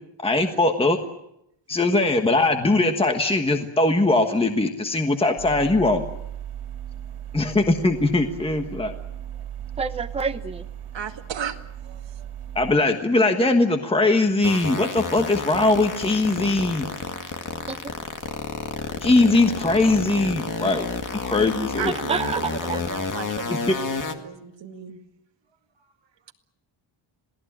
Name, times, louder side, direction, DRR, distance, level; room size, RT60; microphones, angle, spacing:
voice 1, 0.2-1.0 1.7-6.1 7.3-9.0 12.5-16.9 19.0-20.9 21.2-21.9 23.5-23.8, left 2 dB, 10° left, 1.4 m, -21 dB
sound 1, 5.4-12.8, right 10 dB, 80° right, 4.1 m, -37 dB
voice 2, 9.8-10.6 17.7-17.9 22.1-22.8, right 5 dB, 10° right, 0.9 m, -28 dB
voice 3, 10.9-11.6 21.8-25.0, right 8 dB, 60° right, 2.2 m, -35 dB
sound 2, 14.4-24.2, left 4 dB, 40° left, 2.1 m, -30 dB
27.0 x 18.0 x 9.0 m
wide cardioid pair, 175°, 50 cm